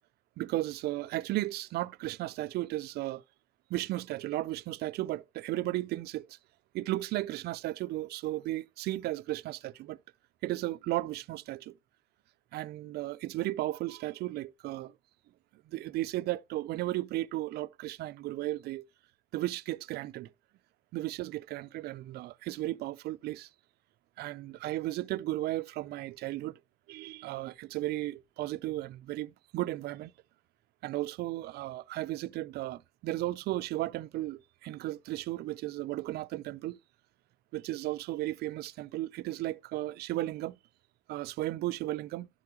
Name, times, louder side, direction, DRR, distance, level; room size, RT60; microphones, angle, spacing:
voice 1, 0.4-3.2 3.7-6.4 6.7-10.0 10.4-11.7 12.5-14.9 15.5-18.9 19.3-20.3 20.9-23.5 24.2-26.6 26.9-30.1 30.8-36.8 37.5-40.6 41.1-42.3, right 16 dB, 70° right, 0.4 m, -35 dB
11.0 x 6.0 x 2.9 m
cardioid pair, 110°, 17 cm